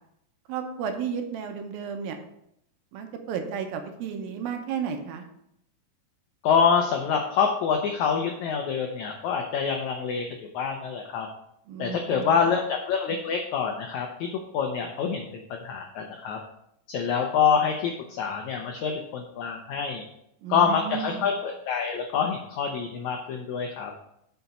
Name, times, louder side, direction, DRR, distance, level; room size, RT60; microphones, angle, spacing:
voice 1, 0.5-2.2 2.9-5.2 11.7-12.5 20.4-21.3, right 7 dB, 80° right, 5 dB, 2.6 m, -33 dB
voice 2, 6.4-10.2 10.5-11.3 11.8-14.3 14.5-16.4 16.9-20.0 20.5-23.9, left 6 dB, 90° left, 3 dB, 1.6 m, -26 dB
7.9 x 5.7 x 4.2 m, 0.77 s
omnidirectional pair, 4.2 m